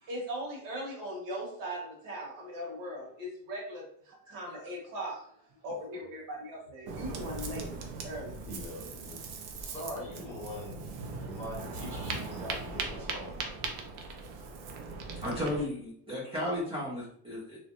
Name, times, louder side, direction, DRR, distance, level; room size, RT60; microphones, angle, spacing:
voice 1, 0.0-5.3 5.6-7.7 8.0-8.4, equal, 50° right, -2 dB, 1.1 m, -39 dB
Ocean, 6.9-15.6, right 4 dB, 90° right, 0.6 m, -39 dB
voice 2, 8.5-9.2 9.5-13.6, left 1 dB, 15° left, -9 dB, 0.8 m, -43 dB
voice 3, 15.2-17.6, left 1 dB, 15° right, -7 dB, 0.3 m, -34 dB
2.4 x 2.0 x 2.8 m, 0.64 s
cardioid pair, 165°, 42 cm